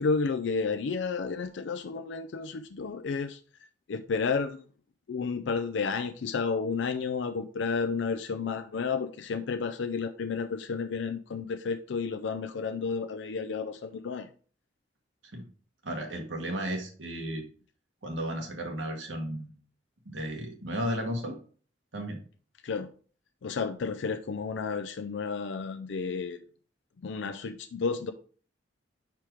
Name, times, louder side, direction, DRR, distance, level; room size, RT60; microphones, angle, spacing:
voice 1, 0.0-3.4 3.9-4.6 5.1-14.3 22.6-22.9 23.4-26.4 27.0-28.1, left 5 dB, 70° left, 8 dB, 0.4 m, -31 dB
voice 2, 15.8-17.4 18.0-19.5 20.0-21.3 21.9-22.2, equal, 80° right, 1 dB, 1.5 m, -34 dB
5.0 x 4.5 x 4.6 m, 0.43 s
head